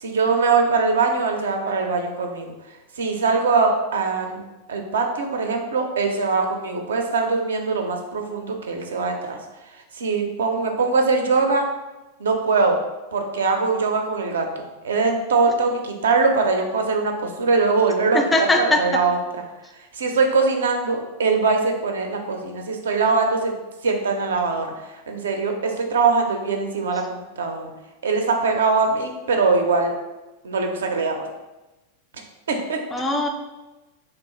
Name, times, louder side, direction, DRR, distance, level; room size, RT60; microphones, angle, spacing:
voice 1, 0.0-2.5 3.0-9.4 9.9-11.7 12.2-12.8 13.1-14.5 14.8-18.2 18.6-19.2 19.9-23.5 23.8-24.7 25.1-27.7 28.0-29.9 30.4-31.2 32.5-32.8, right 4 dB, 65° right, 3 dB, 0.5 m, -22 dB
voice 2, 18.1-19.0 32.9-33.3, left 2 dB, 15° left, 4 dB, 0.4 m, -21 dB
3.2 x 2.4 x 3.0 m, 1.1 s
figure-of-eight pair, 90°, 0 cm